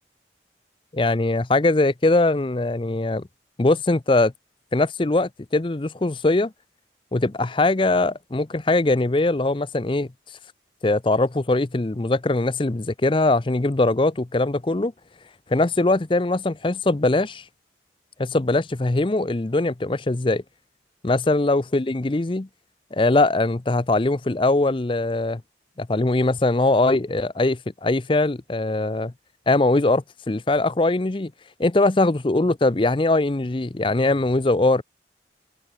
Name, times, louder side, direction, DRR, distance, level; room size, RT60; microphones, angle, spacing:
voice 1, 0.9-3.2 3.6-4.3 4.7-6.5 7.1-10.1 10.8-14.9 15.5-17.4 18.2-20.4 21.0-22.5 22.9-25.4 25.8-29.1 29.5-31.3 31.6-34.8, left 2 dB, 30° left, 0.6 m, -21 dB
head